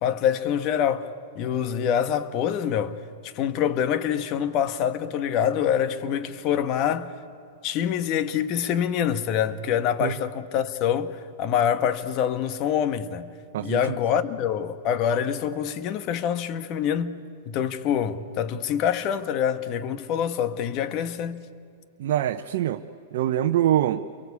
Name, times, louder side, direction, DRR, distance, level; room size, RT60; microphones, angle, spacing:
voice 1, 0.0-3.0 3.2-7.1 7.6-13.3 13.6-21.5, left 9 dB, 40° left, 1.4 m, -25 dB
voice 2, 13.5-14.0 22.0-22.8 23.1-24.1, right 12 dB, 65° right, 0.8 m, -24 dB
29.0 x 23.0 x 8.5 m
hypercardioid pair, 125°, 0 cm